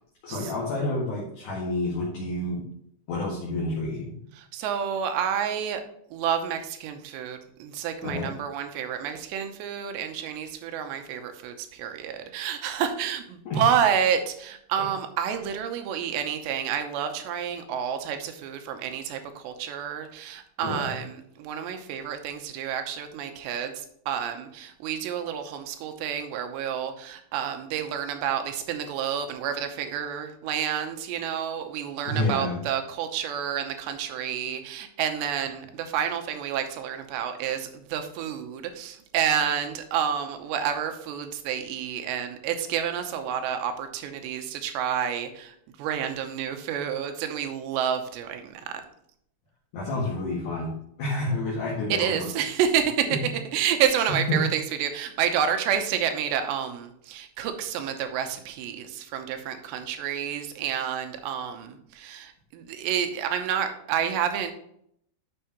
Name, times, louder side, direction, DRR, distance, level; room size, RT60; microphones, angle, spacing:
voice 1, 0.2-2.6 3.1-4.2 8.0-8.3 13.5-13.6 14.8-14.9 20.6-21.0 32.1-32.6 49.7-52.3 53.1-53.2 54.1-54.4, left 1 dB, 55° left, -5 dB, 2.7 m, -29 dB
voice 2, 4.4-5.8 6.1-48.7 51.9-53.1 53.5-64.5, right 8 dB, 80° right, 7 dB, 2.9 m, -29 dB
10.0 x 6.7 x 3.0 m, 0.71 s
omnidirectional pair, 5.3 m